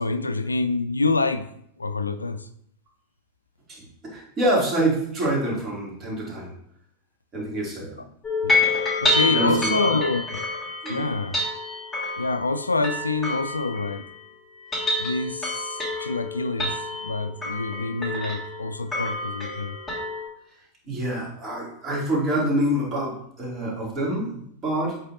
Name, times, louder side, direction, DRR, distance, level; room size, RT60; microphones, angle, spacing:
voice 1, 0.0-1.5 1.8-2.5 8.4-10.2 10.9-11.4 12.2-14.1 15.0-19.8, left 3 dB, 80° left, 11 dB, 0.3 m, -27 dB
voice 2, 3.7-6.5 7.3-8.0 9.3-10.0 10.8-11.1 20.9-25.0, right 1 dB, 25° right, -4 dB, 2.7 m, -26 dB
sound 1, 8.2-14.2 14.6-20.3, left 2 dB, 5° left, 2.7 m, -28 dB
8.1 x 4.7 x 2.7 m, 0.71 s
figure-of-eight pair, 90°, 0 cm